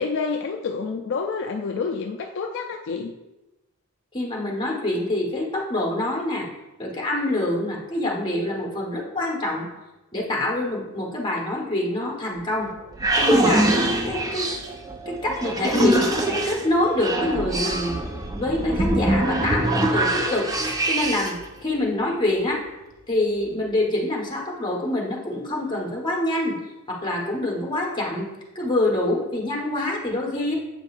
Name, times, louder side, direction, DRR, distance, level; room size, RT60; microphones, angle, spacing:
voice 1, 0.0-3.2, left 4 dB, 55° left, 3 dB, 0.4 m, -28 dB
voice 2, 4.1-6.5 6.8-9.7 10.1-12.7 13.2-13.7 14.0-14.5 15.1-18.0 18.3-20.5 20.9-21.3 21.6-22.6 23.1-26.6 26.9-28.3 28.5-30.5, left 1 dB, 20° left, -2 dB, 1.1 m, -25 dB
sound 1, 12.4-21.5, right 1 dB, 15° right, 0.4 m, -24 dB
7.8 x 5.2 x 2.4 m, 1.0 s
head